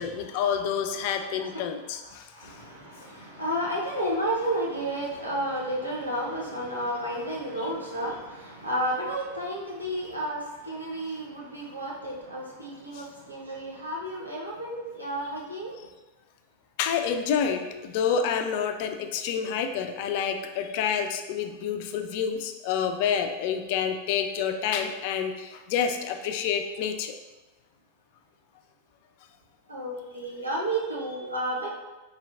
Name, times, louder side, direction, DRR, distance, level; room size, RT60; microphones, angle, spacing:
voice 1, 0.0-2.6 12.9-13.1 16.8-27.1, left 7 dB, 45° left, 6 dB, 0.3 m, -28 dB
voice 2, 2.3-15.7 29.7-31.7, right 1 dB, 80° right, -4 dB, 0.9 m, -32 dB
4.3 x 3.3 x 2.4 m, 1.1 s
figure-of-eight pair, 90°, 0 cm